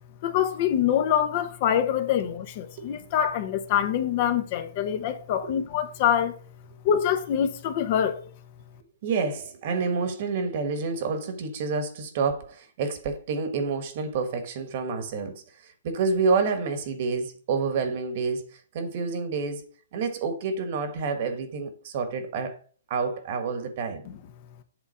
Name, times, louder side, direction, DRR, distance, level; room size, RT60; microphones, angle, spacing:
voice 1, 0.2-6.4 6.8-8.2, left 9 dB, 40° left, 0.8 m, -25 dB
voice 2, 2.8-3.1 5.4-5.5 9.0-19.6 19.9-22.6 22.9-24.1, right 4 dB, 45° right, 1.3 m, -28 dB
8.0 x 3.6 x 5.5 m
hypercardioid pair, 150°, 0 cm